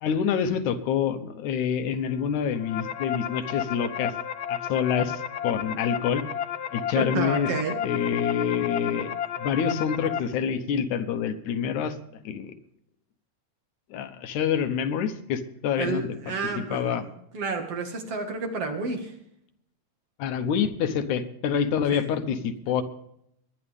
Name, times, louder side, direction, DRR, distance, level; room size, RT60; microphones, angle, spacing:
voice 1, 0.0-4.1 4.5-6.2 6.7-7.5 7.8-11.9 12.2-12.5 13.9-16.1 16.7-17.0 20.2-22.8, left 7 dB, 85° left, 8 dB, 2.5 m, -27 dB
sound 1, 2.4-10.2, left 9 dB, 60° left, 1.3 m, -32 dB
voice 2, 7.0-7.8 15.8-17.0 17.3-19.2 21.9-22.4, right 4 dB, 55° right, 3 dB, 2.7 m, -30 dB
22.5 x 10.5 x 3.6 m, 0.74 s
omnidirectional pair, 3.4 m